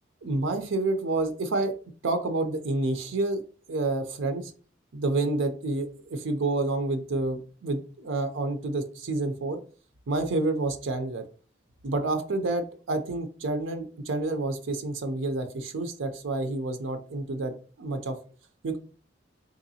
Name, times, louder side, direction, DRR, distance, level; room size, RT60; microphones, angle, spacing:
voice 1, 0.2-1.7 2.0-4.5 4.9-9.6 10.1-11.2 11.8-17.5 17.8-18.2 18.6-18.8, right 2 dB, 80° right, 7 dB, 0.5 m, -29 dB
3.8 x 3.0 x 2.7 m, 0.40 s
head